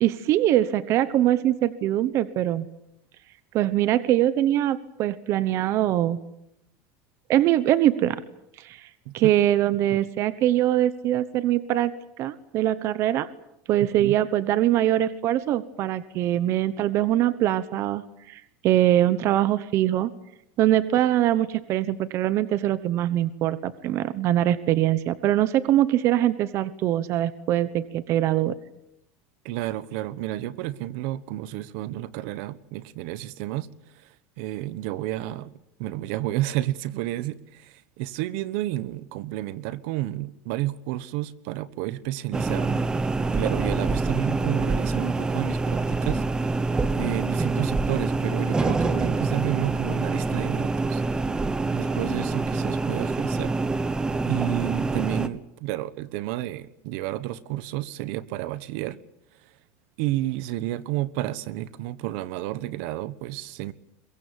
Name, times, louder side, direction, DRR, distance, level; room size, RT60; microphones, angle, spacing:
voice 1, 0.0-2.6 3.5-6.2 7.3-8.2 8.6-8.9 9.1-13.3 13.7-20.1 20.6-28.5, right 13 dB, 40° right, 14 dB, 1.1 m, -23 dB
voice 2, 29.4-33.7 33.9-35.5 35.8-46.7 46.9-51.0 51.7-53.5 54.3-59.0 60.0-63.7, right 15 dB, 60° right, 16 dB, 1.2 m, -31 dB
sound 1, 42.3-55.3, right 3 dB, 10° right, 1.0 m, -26 dB
23.0 x 22.5 x 9.1 m, 0.81 s
cardioid pair, 165°, 7 cm